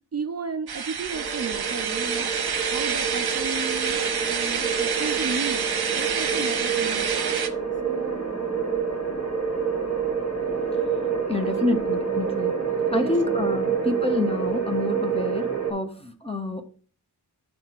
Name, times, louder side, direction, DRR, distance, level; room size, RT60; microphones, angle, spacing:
voice 1, 0.1-4.0 4.3-5.7 5.9-7.1 7.8-8.3 11.4-11.8 12.9-13.4 13.7-13.8, right 5 dB, 40° right, 7 dB, 0.5 m, -34 dB
sound 1, 0.7-7.5, right 6 dB, 70° right, 0.8 m, -28 dB
sound 2, 1.1-15.7, right 6 dB, 40° left, 2.0 m, -28 dB
voice 2, 11.3-12.5 12.9-16.6, left 2 dB, 15° left, 5 dB, 1.0 m, -28 dB
9.2 x 3.2 x 4.4 m, 0.42 s
wide cardioid pair, 105°, 39 cm